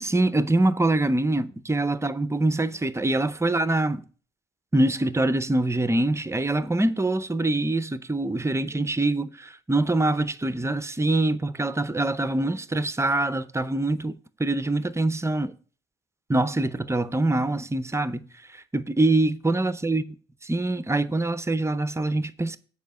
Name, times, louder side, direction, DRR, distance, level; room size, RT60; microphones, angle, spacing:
voice 1, 0.0-4.0 4.7-15.5 16.3-20.0 20.5-22.6, right 2 dB, 15° right, 0.5 m, -24 dB
7.2 x 4.9 x 6.5 m
cardioid pair, 90°, 20 cm